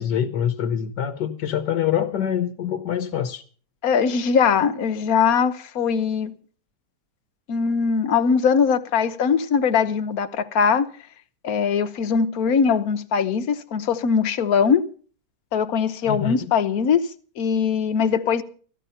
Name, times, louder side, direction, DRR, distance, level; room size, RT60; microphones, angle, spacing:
voice 1, 0.0-3.4 16.0-16.5, left 9 dB, 80° left, 1.5 m, -25 dB
voice 2, 3.8-6.3 7.5-10.9 11.4-14.8 15.5-17.0 17.4-18.4, left 6 dB, 60° left, 1.3 m, -21 dB
15.0 x 12.0 x 5.6 m
omnidirectional pair, 1.8 m